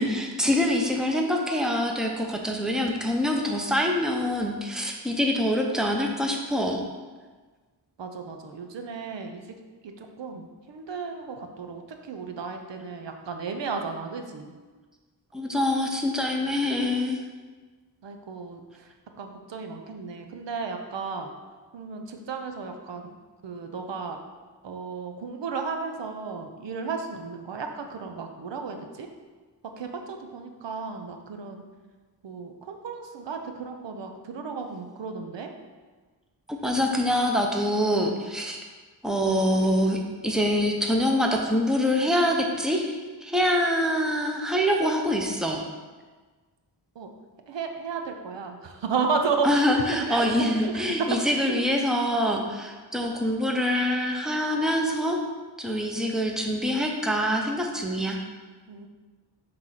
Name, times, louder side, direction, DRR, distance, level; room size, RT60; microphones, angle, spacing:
voice 1, 0.0-6.8 15.3-17.2 36.5-38.6 39.0-45.6 49.4-55.2 55.6-58.2, equal, ahead, 1 dB, 0.7 m, -25 dB
voice 2, 8.0-9.6 9.8-14.5 18.0-21.3 21.7-23.1 23.4-24.2 24.6-29.1 29.6-31.6 32.2-35.5 46.9-47.1 47.5-51.2 51.5-51.6 58.7-58.9, right 5 dB, 80° right, 5 dB, 0.7 m, -33 dB
6.0 x 3.3 x 5.7 m, 1.4 s
wide cardioid pair, 80°, 43 cm